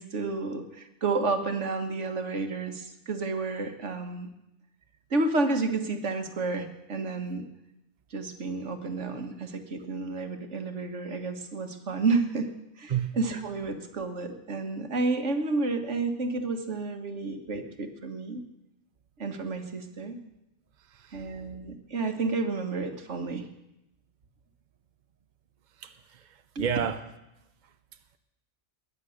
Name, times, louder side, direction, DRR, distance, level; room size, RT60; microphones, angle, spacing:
voice 1, 0.0-4.3 5.1-7.5 8.1-18.4 19.2-20.2 21.1-23.5 26.6-26.7, right 3 dB, 80° right, 6 dB, 1.9 m, -31 dB
voice 2, 20.9-21.3 25.8-27.0, right 8 dB, 45° right, 8 dB, 1.0 m, -32 dB
21.5 x 10.0 x 6.5 m, 0.90 s
omnidirectional pair, 1.2 m